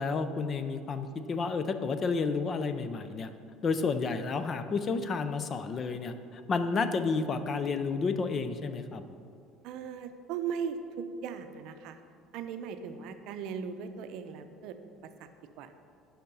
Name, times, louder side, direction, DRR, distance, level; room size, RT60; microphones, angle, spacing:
voice 1, 0.0-3.3 3.6-9.0, left 4 dB, 25° left, 10 dB, 0.5 m, -31 dB
voice 2, 9.6-12.0 12.3-14.8 15.2-15.3 15.6-15.8, right 7 dB, 60° right, 8 dB, 0.6 m, -38 dB
10.0 x 5.8 x 5.4 m, 2.4 s
cardioid pair, 165°, 0 cm